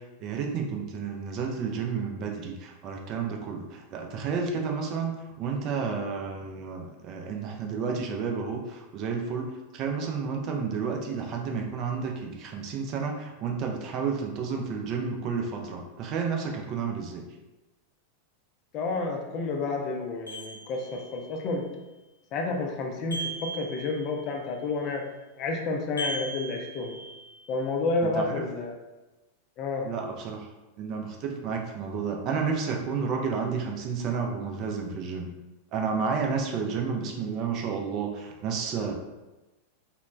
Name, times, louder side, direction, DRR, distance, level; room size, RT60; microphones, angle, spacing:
voice 1, 0.0-17.3 28.0-28.4 29.8-30.5 30.8-35.3 35.7-38.9, right 5 dB, 40° right, 2 dB, 0.3 m, -31 dB
voice 2, 18.7-21.7 22.3-25.0 25.4-27.0 27.5-28.7 29.6-29.9, left 3 dB, 35° left, 2 dB, 0.4 m, -30 dB
sound 1, 20.3-21.3 23.1-24.4 26.0-27.5, right 2 dB, 90° left, 0.5 m, -38 dB
2.9 x 2.0 x 2.3 m, 1.1 s
figure-of-eight pair, 90°, 0 cm